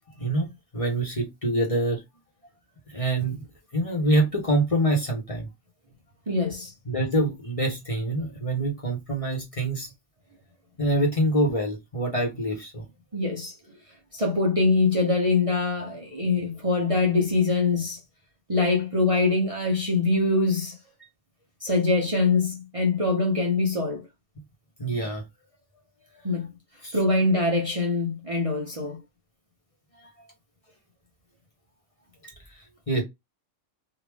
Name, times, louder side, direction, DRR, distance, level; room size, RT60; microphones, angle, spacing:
voice 1, 0.2-2.0 2.9-3.5 3.7-5.5 6.8-9.9 10.8-12.9 24.8-25.2 26.8-27.0 32.2-33.0, right 1 dB, 30° left, 1.1 m, -25 dB
voice 2, 6.3-6.7 13.1-13.6 14.1-18.0 18.5-20.7 21.6-24.0 26.2-26.5 26.9-29.0, left 3 dB, 35° right, 0.8 m, -23 dB
3.3 x 2.5 x 3.4 m
omnidirectional pair, 1.2 m